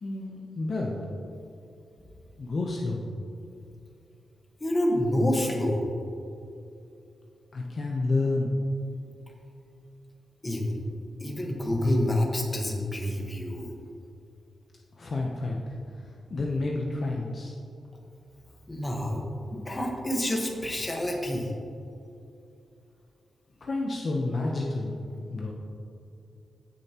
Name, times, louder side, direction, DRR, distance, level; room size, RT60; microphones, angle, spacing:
voice 1, 0.0-1.0 2.4-3.0 7.5-8.5 15.0-15.8 16.3-17.5 23.6-25.0 25.2-25.5, left 2 dB, 45° left, -1 dB, 0.9 m, -29 dB
voice 2, 4.6-5.8 10.4-10.8 11.2-13.7 18.7-19.2 19.5-21.5, left 1 dB, 15° left, 0 dB, 1.4 m, -27 dB
16.0 x 6.7 x 3.0 m, 2.7 s
wide cardioid pair, 140°, 0 cm